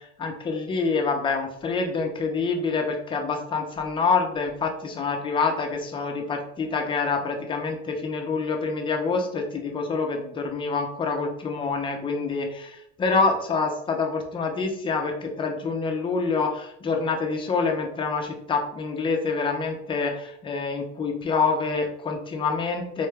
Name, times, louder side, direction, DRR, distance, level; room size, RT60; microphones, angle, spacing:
voice 1, 0.0-23.1, left 4 dB, 15° left, 3 dB, 0.4 m, -26 dB
3.8 x 2.2 x 3.2 m, 0.74 s
cardioid pair, 140°, 30 cm